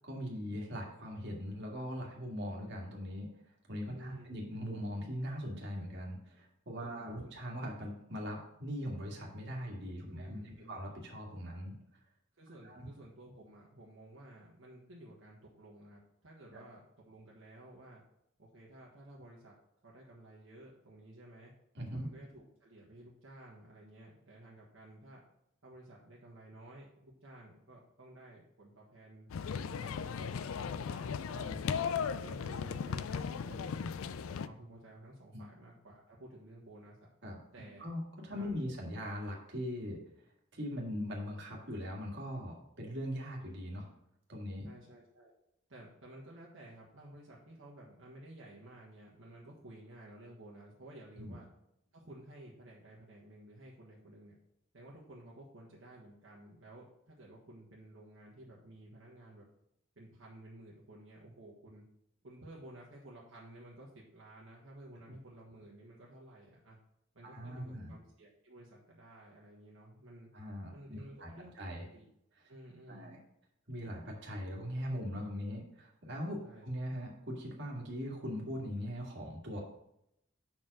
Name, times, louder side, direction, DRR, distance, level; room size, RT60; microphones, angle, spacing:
voice 1, 0.0-3.3 3.7-11.7 12.6-12.9 21.7-22.1 31.3-31.6 35.3-35.4 37.2-37.4 37.8-40.0 40.5-43.9 44.3-44.7 51.2-51.3 67.2-67.9 70.3-71.8 72.9-73.2 73.7-79.6, equal, 60° right, -1 dB, 1.8 m, -40 dB
voice 2, 3.9-4.4 6.8-7.3 10.0-10.8 12.4-18.0 18.4-19.5 19.8-21.5 21.9-25.2 25.6-31.2 31.6-34.0 34.3-37.1 37.5-37.9 38.3-38.7 44.6-45.3 45.7-51.5 51.9-54.4 54.7-59.4 59.9-61.8 62.2-66.8 67.1-70.3 70.7-71.5 71.9-72.1 72.5-73.1 76.4-76.7, right 1 dB, 75° right, -4 dB, 1.5 m, -54 dB
sound 1, 29.3-34.5, left 6 dB, 90° left, 0.4 m, -37 dB
5.6 x 4.6 x 6.4 m, 0.77 s
head